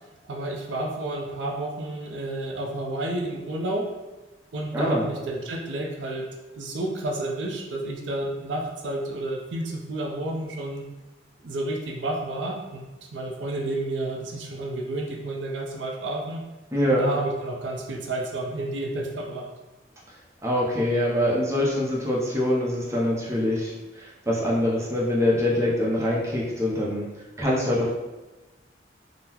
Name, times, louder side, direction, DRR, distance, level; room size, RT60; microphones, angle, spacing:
voice 1, 0.3-3.9 4.5-10.8 11.4-12.8 13.1-16.4 17.0-19.5, right 2 dB, 85° right, 1 dB, 0.5 m, -31 dB
voice 2, 4.7-5.1 16.7-17.1 20.4-27.1 27.4-27.9, left 1 dB, 15° right, -5 dB, 0.5 m, -24 dB
3.7 x 2.0 x 2.8 m, 1.1 s
head